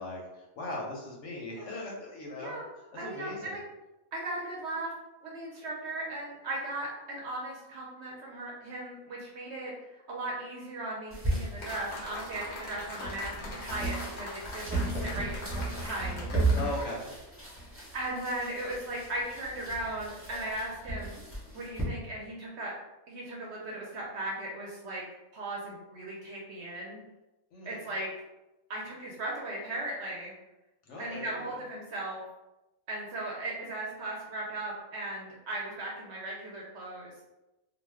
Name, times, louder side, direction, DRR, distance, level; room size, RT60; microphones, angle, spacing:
voice 1, 0.0-2.6 2.9-3.5 16.5-17.1 27.5-27.9 30.8-31.5, left 2 dB, 65° left, -3 dB, 0.8 m, -39 dB
voice 2, 2.4-2.7 2.9-3.6 4.1-4.9 5.2-9.7 10.1-16.5 17.9-21.1 21.5-22.7 23.1-25.0 25.3-27.0 27.6-28.1 28.7-30.3 31.0-32.2 32.9-37.1, right 1 dB, 60° right, -4 dB, 0.8 m, -37 dB
sound 1, 11.1-21.8, right 2 dB, 10° right, 0.8 m, -35 dB
sound 2, 11.6-17.0, left 2 dB, 35° left, 0.4 m, -42 dB
2.4 x 2.1 x 3.3 m, 0.97 s
omnidirectional pair, 1.5 m